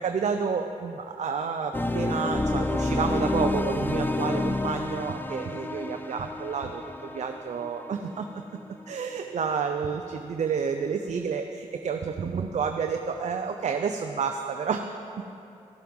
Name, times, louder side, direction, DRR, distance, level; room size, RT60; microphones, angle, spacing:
voice 1, 0.0-8.4 8.9-14.9 15.2-15.3, right 6 dB, 65° right, 5 dB, 0.6 m, -30 dB
sound 1, 1.7-8.6, left 2 dB, 15° left, 0.6 m, -29 dB
14.0 x 7.5 x 5.3 m, 2.8 s
cardioid pair, 60°, 13 cm